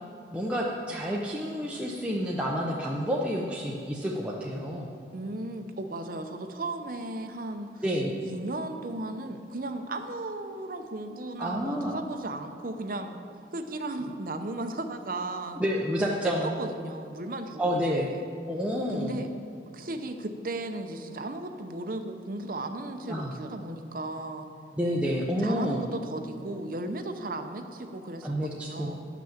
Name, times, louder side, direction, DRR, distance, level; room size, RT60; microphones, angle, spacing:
voice 1, 0.3-4.9 7.8-8.2 11.4-11.9 15.6-16.5 17.6-18.1 18.5-19.2 23.1-23.3 24.7-25.8 28.2-28.9, equal, 5° right, -4 dB, 0.6 m, -29 dB
voice 2, 5.1-7.8 8.2-13.2 13.5-15.6 16.2-18.2 18.9-19.3 19.7-24.5 25.4-29.1, right 2 dB, 45° right, 6 dB, 0.7 m, -35 dB
10.0 x 6.0 x 7.1 m, 2.5 s
head